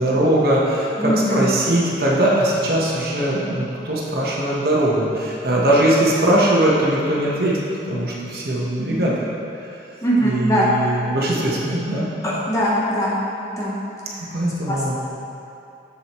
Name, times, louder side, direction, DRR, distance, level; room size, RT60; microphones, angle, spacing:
voice 1, 0.0-7.6 7.9-9.3 10.2-12.1 14.3-15.0, right 1 dB, 55° right, -5 dB, 1.2 m, -20 dB
voice 2, 1.0-1.5 8.8-9.1 10.0-10.7 12.2-13.2 13.5-13.8 14.7-14.8, equal, 15° left, -6 dB, 1.0 m, -21 dB
7.6 x 7.1 x 3.1 m, 2.8 s
head